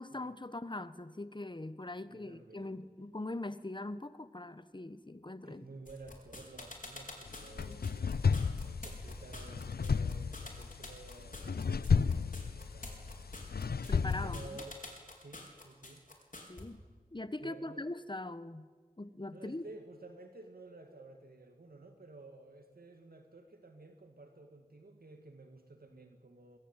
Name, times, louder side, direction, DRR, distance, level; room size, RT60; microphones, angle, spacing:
voice 1, 0.0-5.6 7.7-7.9 13.9-14.6 16.5-16.8 17.1-18.7 19.0-19.6, left 2 dB, 30° left, 14 dB, 1.3 m, -42 dB
voice 2, 2.0-2.8 5.5-13.6 14.2-14.8 15.2-16.0 17.4-17.9 19.3-26.6, right 2 dB, 70° right, 5 dB, 2.1 m, -53 dB
sound 1, 5.9-16.6, left 2 dB, 55° left, 4.8 m, -48 dB
sound 2, 7.3-14.6, left 5 dB, 75° left, 0.6 m, -33 dB
22.0 x 21.0 x 9.0 m, 1.5 s
wide cardioid pair, 40°, 16 cm